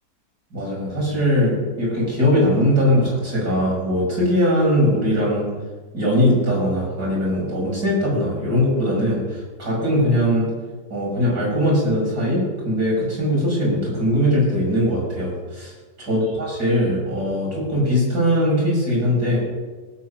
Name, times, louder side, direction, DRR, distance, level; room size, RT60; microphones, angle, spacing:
voice 1, 0.5-5.5 5.9-10.5 10.9-15.7 16.0-19.4, equal, 80° right, -4 dB, 6.5 m, -20 dB
18.0 x 9.1 x 6.3 m, 1.3 s
omnidirectional pair, 1.7 m